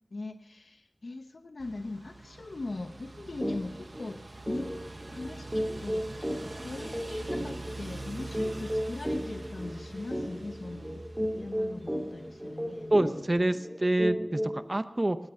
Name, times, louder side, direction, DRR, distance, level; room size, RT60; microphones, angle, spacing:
voice 1, 0.1-4.7 5.1-6.1 6.4-11.0 11.3-13.3, left 2 dB, 90° left, 6 dB, 0.8 m, -41 dB
sound 1, 1.6-13.3, right 2 dB, 60° right, 1.2 m, -44 dB
sound 2, 3.4-3.6 3.9-4.1 4.5-14.7, equal, 15° right, 3.1 m, -34 dB
voice 2, 12.9-15.2, right 1 dB, 40° right, 11 dB, 0.7 m, -27 dB
20.5 x 9.0 x 5.6 m, 1.0 s
wide cardioid pair, 50°, 0 cm